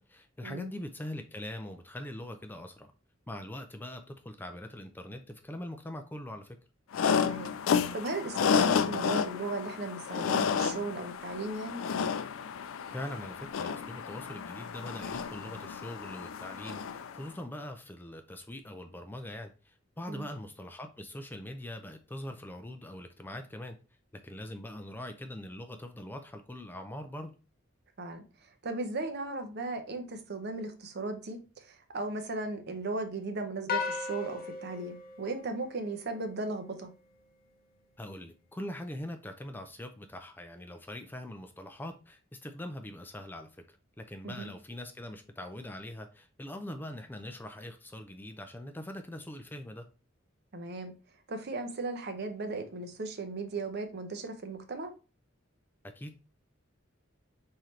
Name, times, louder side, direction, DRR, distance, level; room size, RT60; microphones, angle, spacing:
voice 1, 0.0-2.9 3.3-6.6 12.9-23.8 24.2-27.3 38.0-49.9 55.8-56.2, left 1 dB, 10° left, 0.4 m, -42 dB
sound 1, 6.9-17.2, left 6 dB, 85° left, 0.4 m, -31 dB
voice 2, 7.2-7.5 7.9-11.8 20.1-20.3 28.0-28.2 28.6-36.9 44.2-44.5 50.5-50.9 51.3-54.9, right 3 dB, 55° right, 0.8 m, -36 dB
sound 2, 33.7-36.2, left 5 dB, 50° left, 0.7 m, -37 dB
4.3 x 3.7 x 3.1 m
head